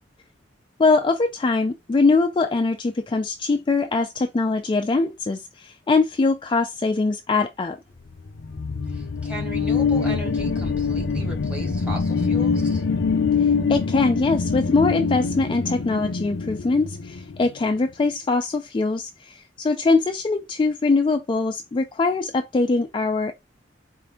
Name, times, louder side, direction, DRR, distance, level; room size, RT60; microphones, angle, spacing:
voice 1, 0.8-7.8 13.4-23.3, left 3 dB, 25° left, 0.3 m, -22 dB
sound 1, 8.3-17.5, left 5 dB, 75° left, 0.6 m, -24 dB
voice 2, 8.9-12.8, right 1 dB, 5° right, 1.5 m, -37 dB
4.3 x 2.6 x 3.5 m
head